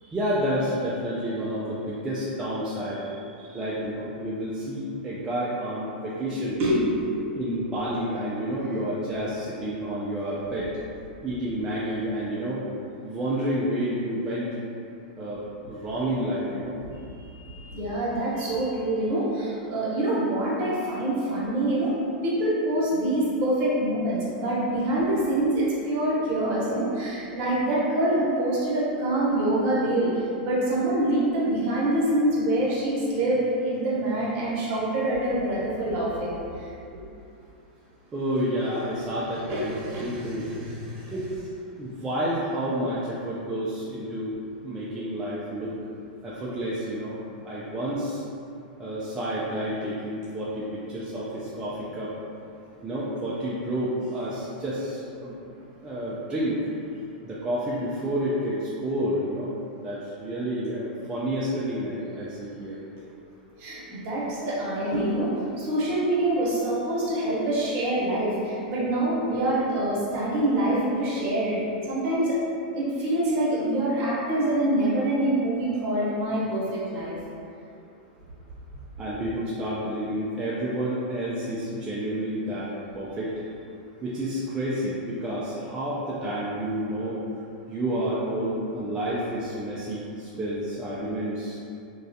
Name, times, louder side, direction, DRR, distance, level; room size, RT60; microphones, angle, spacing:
voice 1, 0.0-6.6 7.4-10.7 11.2-12.6 13.0-14.6 15.2-16.8 38.1-40.5 41.1-41.3 41.8-45.7 46.2-48.2 48.8-52.1 52.8-55.5 55.8-56.7 57.2-59.5 59.8-62.8 79.0-83.5 84.0-87.2 87.7-91.6, equal, 15° right, -8 dB, 0.3 m, -30 dB
voice 2, 6.4-7.2 17.2-21.9 22.2-37.0 39.5-41.1 63.6-71.6 71.9-72.4 72.7-77.2, right 1 dB, 40° right, -6 dB, 0.7 m, -25 dB
2.3 x 2.1 x 2.6 m, 2.5 s
supercardioid pair, 135°, 5 cm